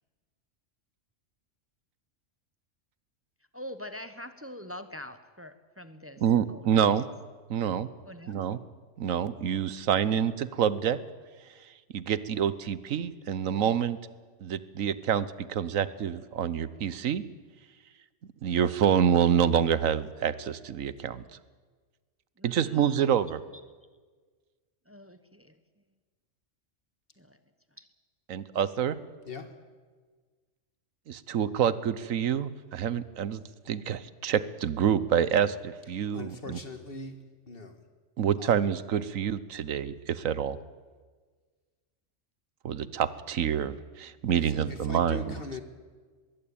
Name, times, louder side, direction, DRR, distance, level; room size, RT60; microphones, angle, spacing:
voice 1, 3.5-6.2 6.5-6.9 8.0-8.5 22.4-23.0 23.5-23.6 24.9-25.8 27.2-27.4 27.7-27.9, left 1 dB, 10° right, 10 dB, 0.9 m, -44 dB
voice 2, 6.2-7.0 7.5-7.9 8.3-8.6 9.0-11.0 11.9-14.0 14.4-17.2 18.4-21.2 22.4-23.4 28.3-29.0 31.1-36.6 38.2-40.6 42.6-45.3, right 8 dB, 85° right, 16 dB, 1.3 m, -27 dB
voice 3, 36.1-37.2 37.5-37.8 38.4-38.6 44.3-45.6, left 3 dB, 45° left, 7 dB, 1.9 m, -41 dB
22.0 x 16.0 x 8.7 m, 1.5 s
omnidirectional pair, 1.3 m